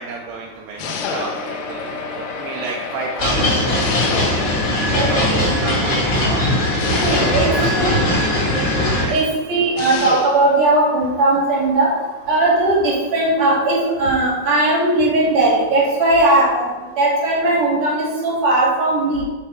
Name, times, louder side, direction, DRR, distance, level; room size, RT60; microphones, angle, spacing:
voice 1, 0.0-1.8 2.2-4.0 4.9-7.7 9.0-9.2, right 4 dB, 80° right, -1 dB, 2.6 m, -31 dB
sound 1, 0.8-1.7 3.8-4.8 6.8-7.8 9.8-10.6, left 6 dB, 90° left, 3.1 m, -28 dB
sound 2, 0.8-6.3 6.9-7.0 7.3-7.4 7.7-7.8, left 4 dB, 75° left, 2.7 m, -31 dB
sound 3, 3.2-9.1, left 1 dB, 45° left, 1.8 m, -19 dB
voice 2, 4.9-5.5 6.9-7.8 9.1-11.9 12.3-16.7 17.0-19.2, right 2 dB, 55° right, -4 dB, 1.6 m, -18 dB
9.8 x 3.4 x 4.4 m, 1.3 s
omnidirectional pair, 5.5 m